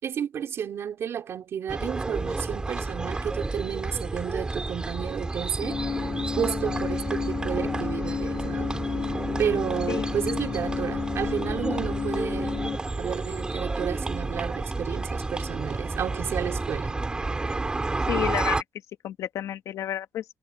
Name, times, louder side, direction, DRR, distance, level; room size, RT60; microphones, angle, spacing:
voice 1, 0.0-5.8 6.4-8.7 9.4-12.6 13.0-17.0, right 8 dB, 50° right, 3.2 m, -31 dB
sound 1, 1.7-18.6, right 3 dB, 15° right, 4.3 m, -31 dB
sound 2, 5.6-12.8, left 6 dB, 35° left, 1.8 m, -31 dB
voice 2, 18.1-18.6 19.0-20.2, left 11 dB, 70° left, 1.3 m, -30 dB
cardioid pair, 170°, 6 cm